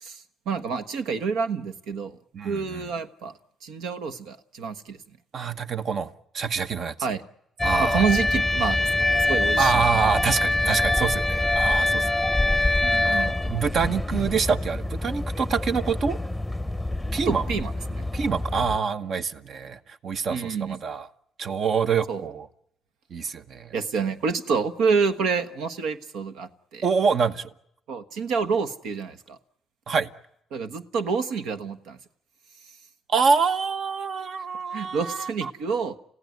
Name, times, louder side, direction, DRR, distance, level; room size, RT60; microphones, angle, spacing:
voice 1, 0.0-2.2 2.4-3.3 3.6-5.0 7.0-7.2 7.8-10.1 12.8-13.3 17.3-18.0 20.3-20.8 22.1-22.2 23.7-26.9 27.9-29.4 30.5-32.0 34.7-36.0, right 5 dB, 90° right, 1.3 m, -28 dB
voice 2, 2.3-2.8 5.3-6.9 7.6-8.0 9.6-12.1 12.6-12.7 13.0-16.2 17.1-17.4 18.1-21.1 21.4-22.5 23.1-23.7 26.8-27.5 29.9-30.1 33.1-35.5, right 5 dB, 55° right, 1.1 m, -26 dB
sound 1, 7.6-18.8, left 2 dB, ahead, 0.9 m, -25 dB
29.5 x 16.0 x 9.5 m
cardioid pair, 90°, 0 cm